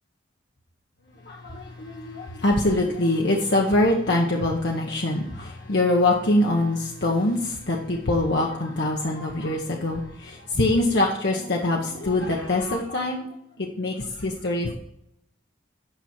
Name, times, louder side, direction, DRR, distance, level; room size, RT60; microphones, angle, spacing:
voice 1, 1.2-13.3 13.6-14.7, left 2 dB, 60° left, -1 dB, 1.0 m, -24 dB
8.9 x 6.1 x 4.4 m, 0.78 s
head